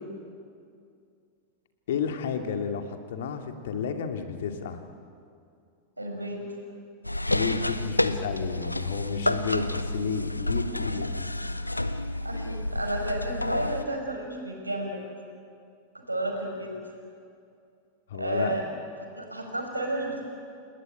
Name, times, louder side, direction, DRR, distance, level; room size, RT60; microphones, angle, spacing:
voice 1, 1.9-4.8 7.3-11.4 18.1-18.6, left 6 dB, 60° left, 6 dB, 2.3 m, -31 dB
voice 2, 6.0-6.4 12.2-15.0 15.9-16.8 18.1-18.6 19.2-20.2, right 1 dB, 85° right, 2 dB, 5.4 m, -32 dB
sound 1, 7.0-13.8, left 1 dB, 85° left, 0.9 m, -29 dB
30.0 x 19.0 x 9.2 m, 2.4 s
figure-of-eight pair, 90°, 0 cm